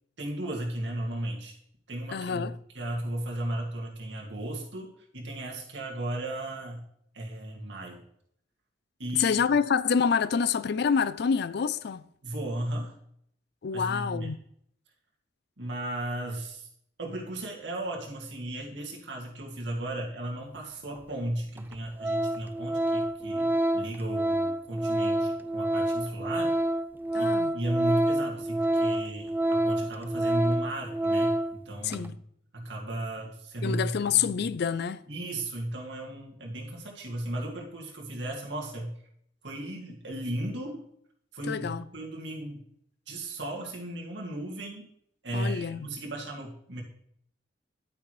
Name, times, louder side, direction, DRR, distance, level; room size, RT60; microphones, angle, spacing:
voice 1, 0.2-1.6 1.9-6.8 7.1-8.1 9.0-9.4 12.2-13.0 13.7-14.3 15.6-16.7 17.0-26.5 27.2-32.1 32.5-34.5 35.1-39.0 39.4-40.9 41.3-42.6 43.1-44.9 45.2-46.8, right 1 dB, 70° right, 2.2 m, -35 dB
voice 2, 2.1-2.5 9.1-12.0 13.6-14.4 27.1-27.5 31.8-32.2 33.6-35.0 41.5-41.8 45.3-45.9, left 6 dB, 60° left, 0.4 m, -27 dB
Organ, 21.0-21.1 21.6-21.7 22.0-31.6 31.9-32.1, right 1 dB, 10° right, 0.3 m, -27 dB
11.0 x 8.8 x 3.2 m
head